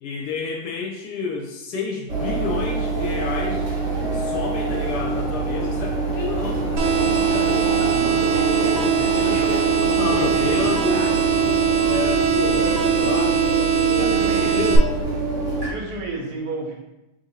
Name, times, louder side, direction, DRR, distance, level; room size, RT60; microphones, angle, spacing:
voice 1, 0.0-3.7 4.1-7.5 8.7-9.4 9.8-11.1 11.8-13.4 13.7-14.8, left 5 dB, 85° left, 0 dB, 1.4 m, -30 dB
sound 1, 2.1-15.7, right 2 dB, 50° right, 1.1 m, -25 dB
sound 2, 6.8-14.8, right 8 dB, 85° right, 1.2 m, -21 dB
voice 2, 7.9-9.6 10.1-11.1 13.9-14.7 15.6-16.7, right 2 dB, 70° right, -3 dB, 1.5 m, -33 dB
3.4 x 2.6 x 4.3 m, 0.96 s
omnidirectional pair, 1.7 m